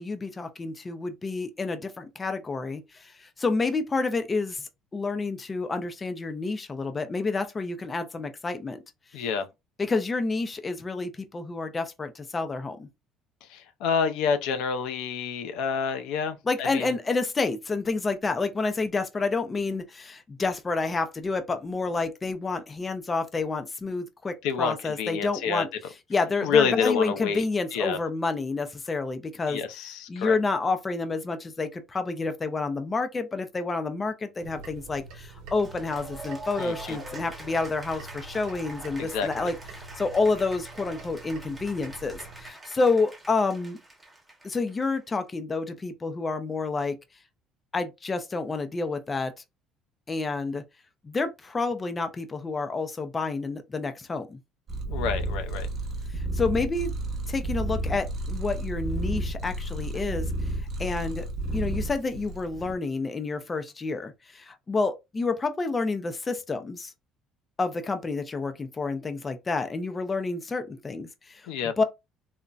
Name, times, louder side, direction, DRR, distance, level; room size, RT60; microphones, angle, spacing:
voice 1, 0.0-8.8 9.1-9.2 9.8-12.9 16.5-25.7 26.1-29.6 30.1-43.8 44.4-47.0 47.7-49.3 50.1-50.6 51.0-54.4 56.1-56.9 57.3-60.3 60.8-61.3 61.5-66.9 67.6-71.8, left 3 dB, 20° left, 0.4 m, -29 dB
voice 2, 9.1-9.5 13.4-16.9 24.4-25.6 26.4-27.4 27.7-28.0 29.5-30.4 36.6-37.0 39.0-39.3 54.9-55.7 71.5-71.7, left 6 dB, 85° left, 0.5 m, -28 dB
sound 1, 34.4-42.5, right 4 dB, 70° right, 0.9 m, -46 dB
Cheering / Applause, 35.5-45.1, right 2 dB, 5° right, 1.0 m, -44 dB
Purr, 54.7-62.7, right 1 dB, 35° right, 0.8 m, -31 dB
3.8 x 2.1 x 2.3 m
cardioid pair, 150°, 0 cm